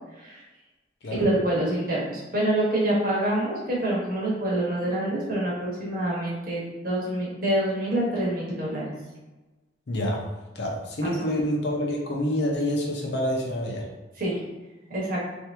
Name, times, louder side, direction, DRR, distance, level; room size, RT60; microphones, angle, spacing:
voice 1, 1.1-8.8 11.0-11.4 14.2-14.4 14.9-15.2, right 1 dB, 50° right, -5 dB, 1.1 m, -26 dB
voice 2, 9.9-10.2 10.5-13.9, left 1 dB, 65° left, -1 dB, 0.7 m, -27 dB
2.9 x 2.6 x 3.4 m, 1.2 s
head